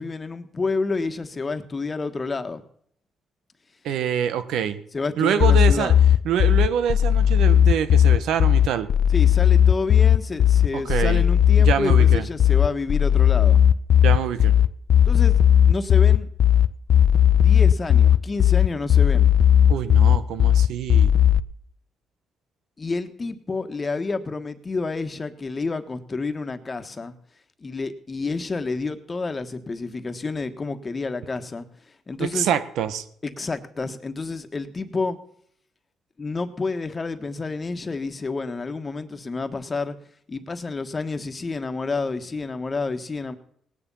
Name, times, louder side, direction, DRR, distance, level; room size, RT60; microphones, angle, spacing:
voice 1, 0.0-2.6 4.9-6.0 9.1-13.6 15.1-15.4 15.6-16.3 17.3-19.3 22.8-27.1 27.6-31.7 32.1-32.5 33.2-35.2 36.2-40.0 40.3-43.3, left 3 dB, 30° left, 9 dB, 1.5 m, -29 dB
voice 2, 3.8-4.8 5.2-5.9 6.2-8.9 10.7-11.2 11.6-12.2 14.0-14.5 19.7-21.1 32.2-33.0, right 9 dB, 85° right, 12 dB, 1.3 m, -25 dB
sound 1, 5.4-21.4, left 9 dB, 60° left, 0.6 m, -16 dB
18.5 x 9.9 x 5.6 m, 0.64 s
cardioid pair, 90°, 0 cm